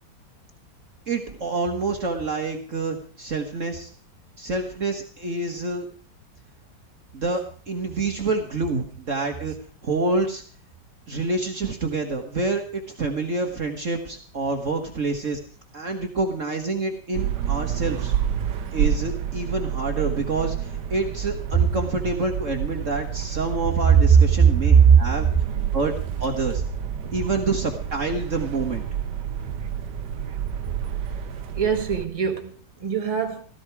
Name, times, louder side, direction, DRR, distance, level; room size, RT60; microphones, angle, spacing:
voice 1, 1.1-3.9 4.4-5.9 7.1-7.4 7.7-9.5 9.8-10.4 11.1-15.4 15.7-18.1 18.7-25.3 25.7-25.9 26.2-26.6 27.1-28.8, right 3 dB, 45° right, 1.7 m, -27 dB
sound 1, 17.1-32.1, right 9 dB, 70° right, 1.6 m, -29 dB
voice 2, 24.4-25.0 25.6-25.7 27.0-27.1 31.6-32.5 32.8-33.4, right 7 dB, 20° right, 1.7 m, -19 dB
16.5 x 13.5 x 4.8 m
omnidirectional pair, 2.0 m